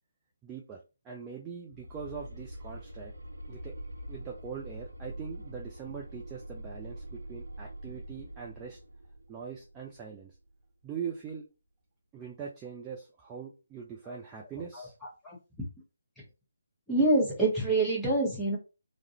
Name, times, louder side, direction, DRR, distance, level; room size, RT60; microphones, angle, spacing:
voice 1, 0.4-0.8 1.0-3.1 3.5-3.7 4.1-8.8 9.3-10.4 10.8-11.5 12.1-14.9, right 7 dB, 15° right, -1 dB, 0.3 m, -42 dB
sound 1, 1.7-10.6, right 1 dB, 75° right, 0.5 m, -44 dB
voice 2, 15.2-15.7 16.2-16.3 16.9-18.6, right 2 dB, ahead, -8 dB, 0.9 m, -26 dB
2.3 x 2.0 x 2.8 m, 0.30 s
figure-of-eight pair, 145°, 0 cm